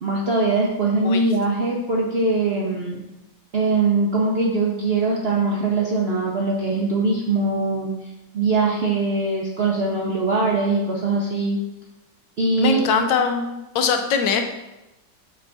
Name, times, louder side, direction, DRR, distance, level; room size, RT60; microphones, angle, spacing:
voice 1, 0.0-3.0 3.5-7.9 8.3-11.6 12.4-12.8, right 3 dB, 55° right, -3 dB, 0.6 m, -22 dB
voice 2, 12.6-13.5 13.7-14.4, left 5 dB, 80° left, 6 dB, 1.3 m, -21 dB
7.1 x 3.4 x 4.0 m, 0.97 s
omnidirectional pair, 2.0 m